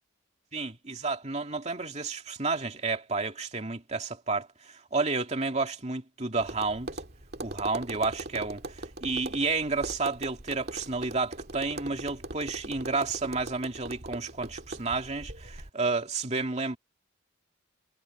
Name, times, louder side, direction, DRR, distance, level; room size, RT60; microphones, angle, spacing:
voice 1, 0.5-6.9 7.4-16.8, right 3 dB, 30° right, 2.4 m, -31 dB
Tap, 6.4-15.7, right 2 dB, 50° right, 2.4 m, -40 dB
head